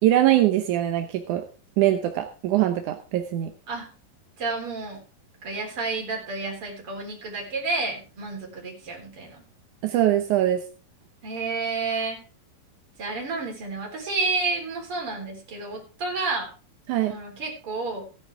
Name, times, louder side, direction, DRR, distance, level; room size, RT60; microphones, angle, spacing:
voice 1, 0.0-1.5 1.8-3.5 9.8-10.6 16.9-17.2, right 13 dB, 70° right, 6 dB, 2.0 m, -22 dB
voice 2, 4.4-5.0 5.4-9.4 11.2-12.2 13.0-16.5 17.1-18.1, right 3 dB, 35° right, 0 dB, 4.7 m, -30 dB
16.5 x 10.5 x 3.5 m, 0.35 s
omnidirectional pair, 4.5 m